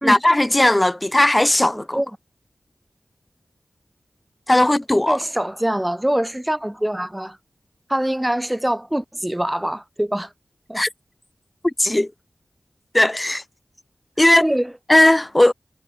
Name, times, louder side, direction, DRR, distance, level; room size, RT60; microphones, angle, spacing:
voice 1, 0.0-2.0 4.5-5.2 10.7-10.9 11.8-12.1 12.9-13.4 14.2-14.5 14.9-15.5, left 1 dB, 20° left, 0.5 m, -17 dB
voice 2, 1.7-2.1 4.6-4.7 5.1-7.4 7.9-10.3 10.7-10.8 14.4-14.7, right 1 dB, 10° right, 0.7 m, -24 dB
wide cardioid pair, 65°, 0 cm